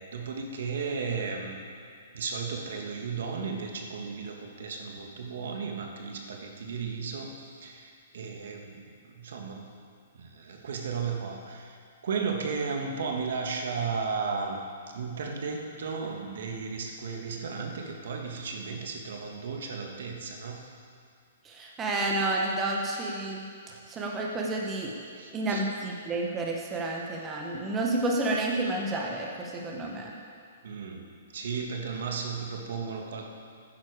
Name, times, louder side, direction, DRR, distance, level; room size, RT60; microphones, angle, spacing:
voice 1, 0.0-1.6 2.1-9.6 10.1-11.8 12.0-14.6 14.9-20.6 25.1-25.7 30.6-33.2, right 5 dB, 65° right, 2 dB, 1.6 m, -34 dB
voice 2, 21.4-23.5 23.9-24.9 25.3-30.1, right 2 dB, 15° right, -1 dB, 0.9 m, -30 dB
11.5 x 9.8 x 4.9 m, 2.3 s
hypercardioid pair, 165°, 0 cm